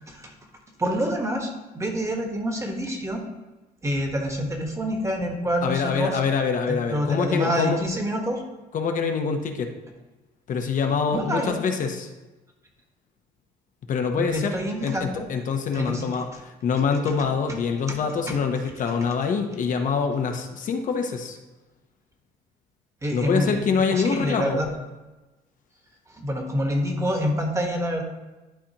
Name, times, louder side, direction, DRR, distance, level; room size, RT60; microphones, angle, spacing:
voice 1, 0.8-3.2 3.8-6.2 6.7-8.4 11.1-11.6 14.1-15.2 15.7-16.0 17.9-18.0 18.3-18.4 23.0-23.5 23.9-24.8 26.1-28.0, equal, 15° right, 2 dB, 1.4 m, -27 dB
voice 2, 5.6-7.8 8.7-9.7 10.5-12.1 13.9-14.5 14.8-21.4 23.1-24.6, left 5 dB, 50° left, 4 dB, 0.9 m, -25 dB
11.5 x 4.2 x 2.9 m, 1.1 s
cardioid pair, 110°, 17 cm